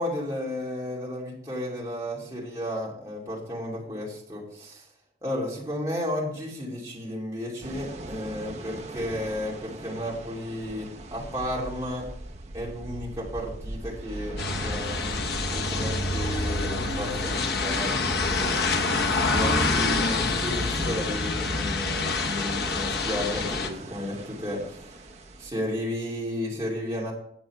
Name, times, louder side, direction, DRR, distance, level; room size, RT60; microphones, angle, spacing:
voice 1, 0.0-4.9 5.2-12.1 12.5-15.2 15.5-18.5 19.2-24.9 25.4-27.1, left 1 dB, 15° right, -5 dB, 2.8 m, -33 dB
sound 1, 7.6-25.5, right 2 dB, 35° right, 0.7 m, -39 dB
sound 2, 14.4-23.7, left 3 dB, 60° left, 1.0 m, -27 dB
9.1 x 7.8 x 4.6 m, 0.67 s
head